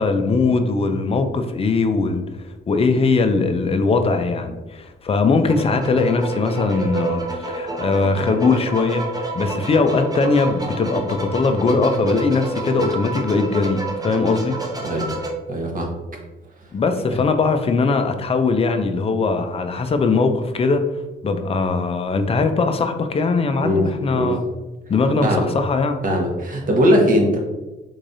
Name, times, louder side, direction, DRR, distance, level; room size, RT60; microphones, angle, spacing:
voice 1, 0.0-2.2 2.7-7.2 7.5-13.8 14.0-14.5 16.7-20.8 21.2-24.4 24.9-26.0, left 4 dB, 30° left, 7 dB, 0.4 m, -20 dB
sound 1, 5.4-15.3, right 2 dB, 20° right, 0.7 m, -29 dB
voice 2, 15.5-15.9 23.6-24.4 25.2-25.5 26.0-27.4, equal, 45° right, 1 dB, 1.0 m, -19 dB
3.7 x 3.2 x 2.6 m, 1.1 s
cardioid pair, 90°, 20 cm